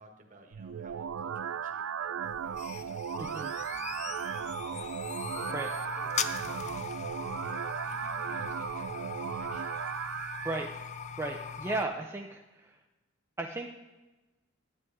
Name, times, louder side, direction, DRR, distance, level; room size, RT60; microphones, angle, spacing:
voice 1, 0.0-4.9 5.3-9.8, right 2 dB, 40° right, 3 dB, 1.5 m, -55 dB
sound 1, 0.5-10.5, right 8 dB, 90° right, 0.3 m, -36 dB
sound 2, 2.3-11.9, left 7 dB, 35° left, 0.4 m, -40 dB
voice 2, 3.2-3.5 5.5-5.7 10.4-10.7 11.2-12.8 13.4-13.7, right 2 dB, 15° right, 1 dB, 0.6 m, -35 dB
12.5 x 9.3 x 3.6 m, 1.1 s
head